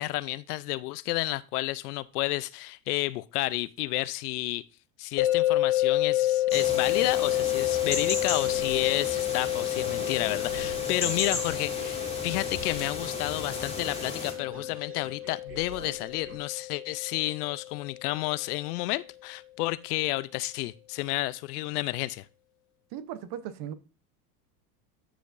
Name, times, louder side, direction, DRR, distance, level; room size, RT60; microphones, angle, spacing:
voice 1, 0.0-4.6 5.0-22.3, left 19 dB, 70° left, 0.6 m, -31 dB
sound 1, 5.2-18.2, left 14 dB, 55° left, 2.1 m, -29 dB
sound 2, 6.5-14.3, left 3 dB, 10° left, 2.1 m, -35 dB
sound 3, 8.4-16.4, right 3 dB, 25° right, 2.2 m, -47 dB
voice 2, 22.9-23.7, right 10 dB, 50° right, 1.0 m, -37 dB
13.5 x 5.1 x 2.6 m
supercardioid pair, 110°, 47 cm